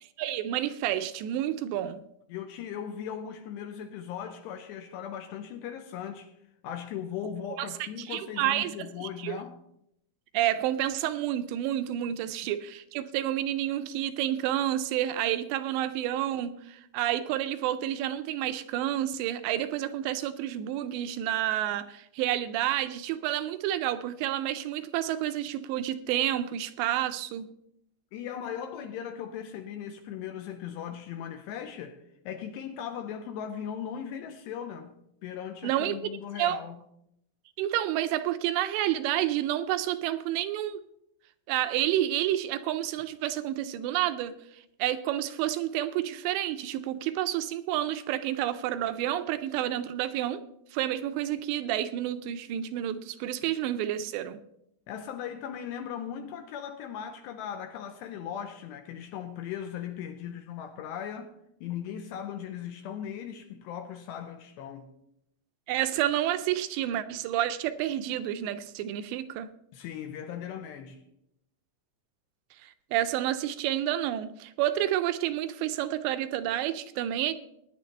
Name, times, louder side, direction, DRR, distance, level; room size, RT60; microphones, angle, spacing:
voice 1, 0.2-2.0 7.6-7.7 8.0-9.4 10.3-27.5 35.6-36.0 36.4-36.6 37.6-40.8 41.5-44.3 44.8-50.4 50.7-54.4 65.7-69.5 72.6-77.3, right 12 dB, 85° right, 2.6 m, -29 dB
voice 2, 2.3-6.3 6.6-9.6 28.1-32.0 32.3-34.9 35.2-36.8 54.9-61.3 61.6-64.9 69.7-71.0, left 9 dB, 80° left, 2.6 m, -38 dB
20.0 x 9.9 x 3.2 m
omnidirectional pair, 5.5 m